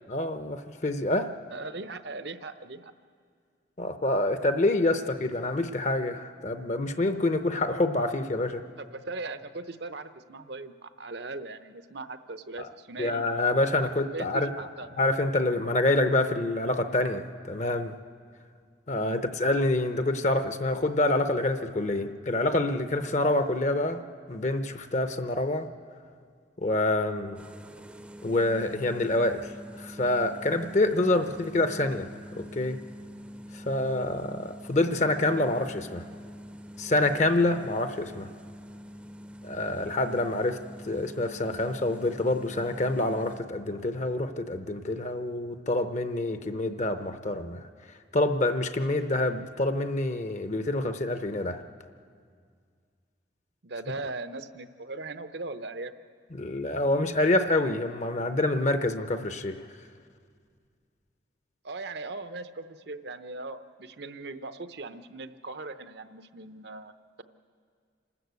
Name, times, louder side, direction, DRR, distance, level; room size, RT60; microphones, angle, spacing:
voice 1, 0.1-1.3 3.8-8.6 12.6-12.7 13.0-14.5 15.0-17.9 18.9-24.0 24.3-25.7 26.6-27.4 28.2-29.5 29.8-32.8 33.5-36.0 36.8-38.3 39.4-40.6 40.9-47.7 48.1-51.6 56.4-59.6, left 2 dB, 40° left, 9 dB, 0.7 m, -27 dB
voice 2, 1.5-2.9 8.8-13.2 13.7-14.9 19.0-19.2 23.2-23.3 53.6-55.9 61.6-66.9, right 3 dB, 65° right, 11 dB, 0.8 m, -39 dB
sound 1, 27.3-43.4, equal, 5° right, 0.6 m, -45 dB
27.0 x 13.0 x 8.2 m, 2.1 s
head